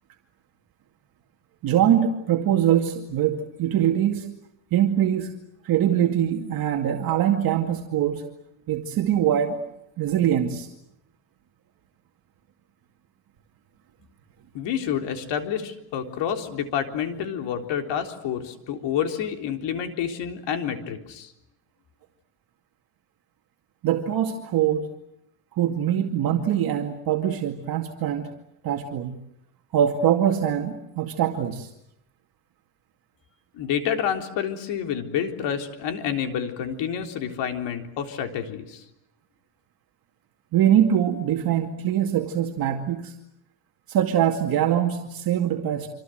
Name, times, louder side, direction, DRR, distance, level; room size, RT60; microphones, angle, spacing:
voice 1, 1.6-4.3 4.7-5.3 5.6-8.2 8.7-9.6 10.0-10.7 23.8-24.9 25.5-28.3 28.6-29.2 29.7-31.7 40.5-43.1 43.9-45.9, right 10 dB, 50° right, 2 dB, 2.4 m, -23 dB
voice 2, 14.5-21.3 33.5-38.8, left 8 dB, 65° left, 5 dB, 3.8 m, -28 dB
27.0 x 26.5 x 7.9 m, 0.81 s
cardioid pair, 150°, 45 cm